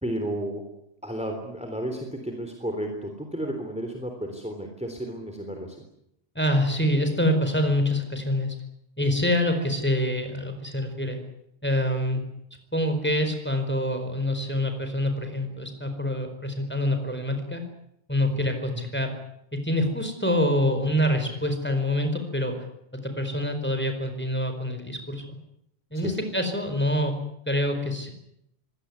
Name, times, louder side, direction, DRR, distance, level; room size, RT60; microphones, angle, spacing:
voice 1, 0.0-0.6 1.0-5.8 18.2-18.4 25.9-26.1, right 1 dB, 5° right, 4 dB, 3.5 m, -32 dB
voice 2, 6.3-8.5 9.0-11.2 11.6-12.2 12.7-17.6 18.1-19.1 19.5-22.6 22.9-25.3 25.9-27.1 27.5-28.1, left 1 dB, 10° left, 6 dB, 4.5 m, -26 dB
24.5 x 17.5 x 9.7 m, 0.77 s
omnidirectional pair, 1.1 m